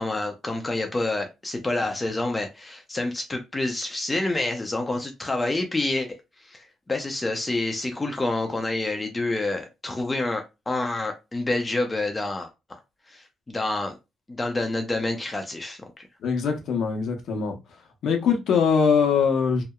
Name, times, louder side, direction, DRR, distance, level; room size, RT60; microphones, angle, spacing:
voice 1, 0.0-6.1 6.4-12.5 13.1-13.9 14.3-16.1, left 2 dB, 20° left, 0.5 m, -28 dB
voice 2, 16.2-17.6 18.0-19.6, left 6 dB, 70° left, 0.7 m, -22 dB
2.8 x 2.0 x 2.3 m
cardioid pair, 90°, 0 cm